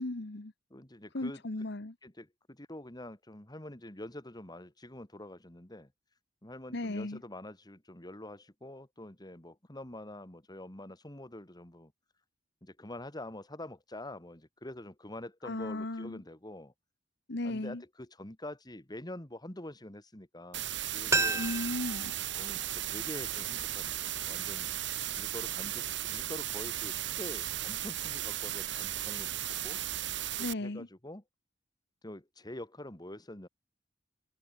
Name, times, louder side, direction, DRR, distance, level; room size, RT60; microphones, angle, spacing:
voice 1, 0.0-0.5 1.1-1.9 6.7-7.2 15.4-16.2 17.3-17.8 21.3-22.1 30.4-30.9, left 2 dB, 60° left, 1.2 m, -36 dB
voice 2, 0.7-1.4 2.0-5.9 6.4-11.9 12.6-16.7 17.4-21.4 22.3-24.7 25.1-29.8 30.4-31.2 32.0-33.5, left 1 dB, 20° left, 2.5 m, -46 dB
sound 1, 20.5-30.5, right 12 dB, 65° right, 2.0 m, -36 dB
sound 2, 21.1-23.9 24.2-24.3, right 3 dB, 15° right, 1.5 m, -34 dB
head